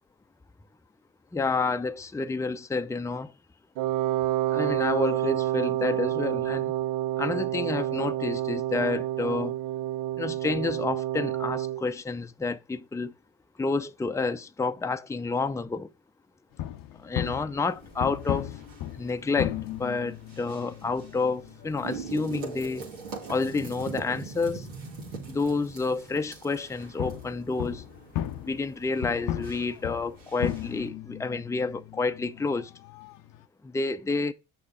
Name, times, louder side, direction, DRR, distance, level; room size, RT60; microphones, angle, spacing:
voice 1, 1.3-3.3 4.5-6.7 7.2-9.6 10.2-13.1 13.6-15.9 17.0-18.6 18.9-22.9 23.3-24.7 25.3-27.9 28.4-32.7 33.6-34.3, left 3 dB, 10° left, 0.6 m, -29 dB
Wind instrument woodwind instrument, 3.8-11.8, right 13 dB, 60° right, 0.5 m, -28 dB
sound 1, 16.5-24.5 24.8-24.9 25.8-25.9 27.0-33.5, left 12 dB, 60° left, 0.7 m, -36 dB
sound 2, 17.7-30.9, right 5 dB, 90° right, 2.0 m, -43 dB
8.2 x 6.6 x 3.6 m
hypercardioid pair, 55°, 37 cm